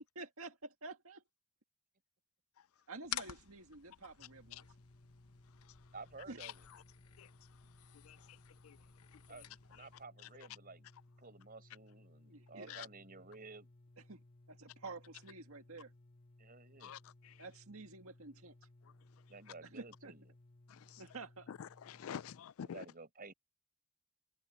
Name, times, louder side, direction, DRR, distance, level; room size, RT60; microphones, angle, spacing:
voice 1, 0.2-1.2 2.9-4.6 6.3-6.4 12.3-12.9 14.1-14.2 14.5-15.9 17.4-18.5 19.7-20.1 21.0-21.5, right 3 dB, 75° right, 1.9 m, -50 dB
sound 1, 3.0-10.0, left 11 dB, 85° left, 0.9 m, -51 dB
sound 2, 4.2-22.4, left 1 dB, 25° left, 1.3 m, -63 dB
voice 2, 5.9-6.7 9.3-10.9 11.2-13.7 16.4-17.0 19.3-20.3 22.6-23.3, right 3 dB, 40° right, 4.9 m, -53 dB
voice 3, 20.7-21.0 21.5-22.8, left 8 dB, 70° left, 0.4 m, -47 dB
head